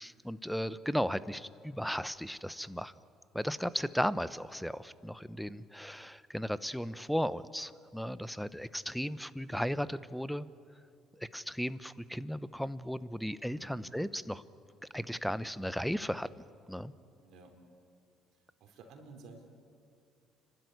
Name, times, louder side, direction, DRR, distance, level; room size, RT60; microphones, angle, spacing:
voice 1, 0.0-2.9 3.3-10.5 11.2-14.4 14.9-16.3 16.7-16.9, equal, ahead, 16 dB, 0.9 m, -35 dB
voice 2, 13.5-14.0 17.2-17.6 18.3-19.5, right 3 dB, 65° right, 4 dB, 3.8 m, -54 dB
30.0 x 12.5 x 9.7 m, 2.5 s
hypercardioid pair, 65°, 0 cm